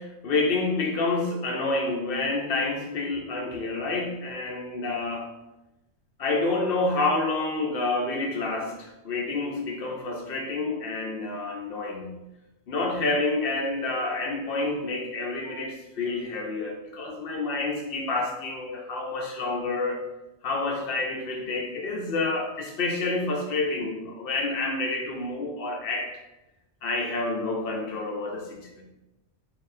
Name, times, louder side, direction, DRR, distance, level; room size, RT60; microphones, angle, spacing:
voice 1, 0.0-5.3 6.2-12.1 12.7-20.0 20.4-26.1 26.8-28.8, left 3 dB, 60° left, 1 dB, 0.8 m, -28 dB
4.2 x 2.7 x 2.5 m, 0.97 s
omnidirectional pair, 1.2 m